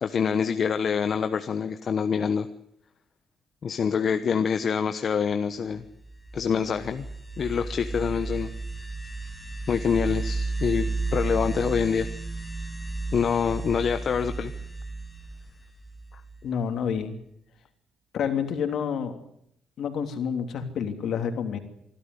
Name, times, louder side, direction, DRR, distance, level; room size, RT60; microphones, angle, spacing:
voice 1, 0.0-2.5 3.6-5.8 6.3-7.0 7.4-8.5 9.7-12.1 13.1-14.5 16.1-16.2, left 6 dB, 50° left, 8 dB, 1.1 m, -26 dB
sound 1, 5.9-16.5, right 3 dB, 15° left, 3.8 m, -33 dB
voice 2, 16.4-17.1 18.1-19.2 19.8-21.6, left 7 dB, 70° left, 6 dB, 3.0 m, -28 dB
25.0 x 12.5 x 9.8 m, 0.75 s
cardioid pair, 90°, 0 cm